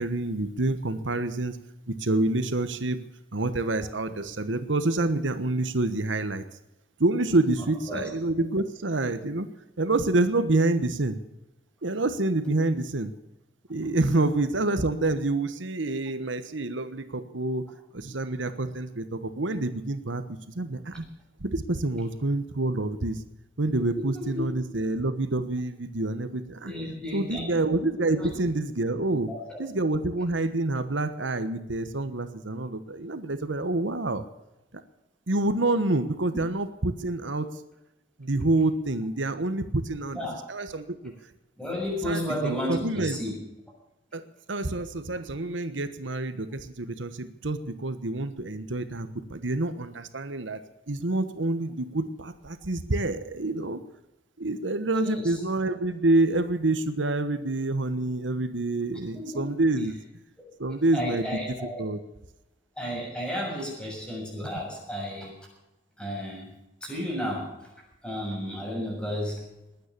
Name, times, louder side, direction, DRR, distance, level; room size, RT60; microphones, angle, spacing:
voice 1, 0.0-1.6 1.9-3.0 3.3-6.4 7.0-9.5 9.8-11.2 11.8-13.1 13.7-17.6 17.9-21.0 21.4-23.2 23.6-26.7 27.1-29.3 29.6-34.2 35.3-37.5 38.2-40.2 40.5-41.1 42.0-43.2 44.1-44.2 44.5-50.6 50.9-53.8 54.4-60.0 60.6-61.4 61.8-62.0, right 2 dB, 85° right, 11 dB, 1.2 m, -27 dB
voice 2, 23.9-24.4 26.6-27.6 28.1-28.3 29.1-29.6 40.1-40.4 41.6-43.4 55.0-55.2 59.1-59.4 59.7-59.9 60.9-61.8 62.8-65.3 66.0-66.5 66.8-67.5 68.0-69.5, equal, 5° left, -2 dB, 6.8 m, -33 dB
21.0 x 9.5 x 6.8 m, 0.92 s
head